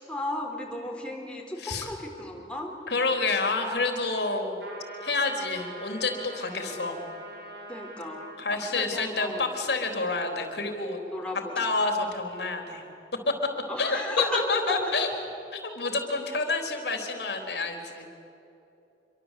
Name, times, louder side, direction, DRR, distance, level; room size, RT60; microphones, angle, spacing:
voice 1, 0.0-2.7 6.5-6.7 7.7-9.5 11.1-11.7 13.7-15.4, left 1 dB, 5° left, -1 dB, 4.2 m, -35 dB
voice 2, 2.9-4.6 5.0-7.0 8.4-11.0 11.6-12.8 13.3-13.4 13.8-15.1 15.6-18.1, left 3 dB, 75° left, 4 dB, 3.9 m, -28 dB
sound 1, 4.6-8.4, right 1 dB, 75° right, 6.9 m, -43 dB
27.5 x 24.0 x 8.5 m, 2.8 s
head